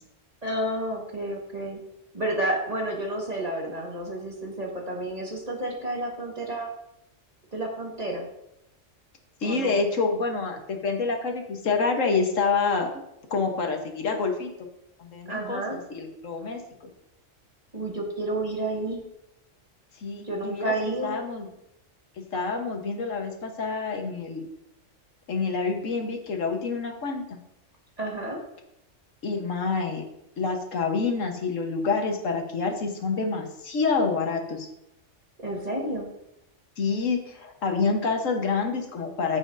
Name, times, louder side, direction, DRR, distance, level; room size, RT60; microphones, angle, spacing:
voice 1, 0.4-1.8 2.1-6.7 7.5-8.3 9.4-9.8 15.3-15.8 17.7-19.0 20.2-21.2 28.0-28.4 35.4-36.1, right 1 dB, 30° right, -1 dB, 1.6 m, -30 dB
voice 2, 9.4-12.9 13.3-14.5 15.0-16.6 20.0-20.7 21.0-21.5 22.2-24.5 25.3-27.4 29.2-30.0 30.4-34.7 36.8-39.4, left 4 dB, 80° left, 4 dB, 1.5 m, -27 dB
14.5 x 5.7 x 2.6 m, 0.84 s
omnidirectional pair, 1.3 m